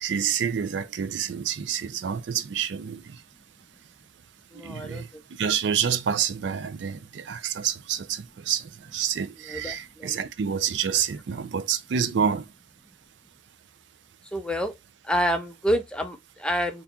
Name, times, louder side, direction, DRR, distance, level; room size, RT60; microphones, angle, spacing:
voice 1, 0.0-3.0 4.6-5.1 5.4-12.4, right 8 dB, 70° right, 0.4 m, -28 dB
voice 2, 4.5-5.2 9.5-10.2 14.3-14.7 15.0-16.8, equal, 5° left, 0.4 m, -28 dB
3.5 x 2.4 x 2.7 m
head